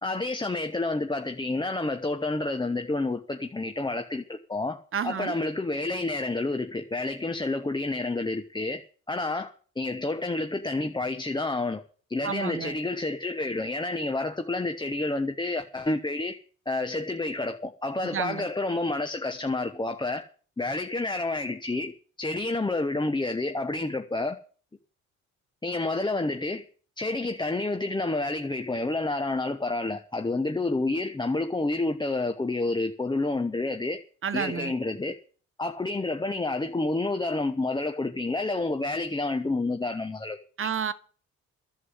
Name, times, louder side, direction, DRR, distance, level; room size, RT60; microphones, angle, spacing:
voice 1, 0.0-8.8 9.1-11.8 12.1-20.3 20.6-21.9 22.2-24.4 25.6-26.6 27.0-34.0 34.3-35.2 35.6-40.7, left 2 dB, 15° left, 1.2 m, -29 dB
voice 2, 4.9-5.4 12.2-12.7 18.1-18.5 34.2-34.7 40.6-40.9, right 7 dB, 45° right, 1.3 m, -30 dB
11.0 x 8.1 x 9.8 m
cardioid pair, 90°, 30 cm